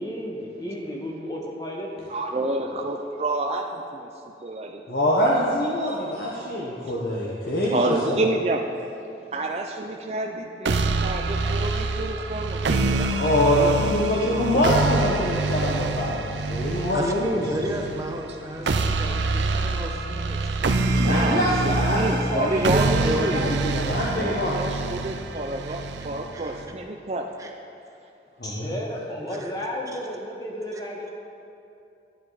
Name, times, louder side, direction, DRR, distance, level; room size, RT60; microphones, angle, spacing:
voice 1, 0.0-2.1 2.5-2.7 28.4-31.1, equal, 20° left, -1 dB, 1.2 m, -33 dB
voice 2, 2.1-4.1 4.4-4.8 5.8-6.3 7.7-8.6 9.3-13.2 13.6-13.8 18.3-18.4 21.0-23.8 24.1-27.5, right 2 dB, 35° right, 2 dB, 0.5 m, -29 dB
voice 3, 4.9-8.2 13.1-17.3 21.1-22.8 23.1-24.5 28.4-28.7, left 1 dB, 55° left, -6 dB, 1.1 m, -24 dB
sound 1, 10.7-26.7, right 3 dB, 85° right, 0.6 m, -26 dB
voice 4, 16.9-21.1 22.5-23.6 24.6-24.7 25.6-25.7 26.3-26.5 27.4-27.5 29.2-29.5, right 1 dB, 20° right, 1 dB, 0.8 m, -32 dB
11.0 x 9.6 x 4.0 m, 2.6 s
head